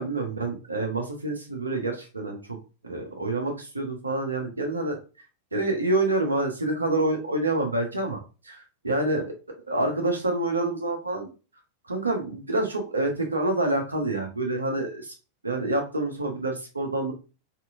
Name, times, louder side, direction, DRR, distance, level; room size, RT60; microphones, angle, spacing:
voice 1, 0.0-2.6 2.8-5.0 5.5-9.3 9.7-11.3 11.9-15.1 15.4-17.1, right 2 dB, 80° right, 3 dB, 0.7 m, -27 dB
2.8 x 2.5 x 2.4 m, 0.32 s
figure-of-eight pair, 90°, 0 cm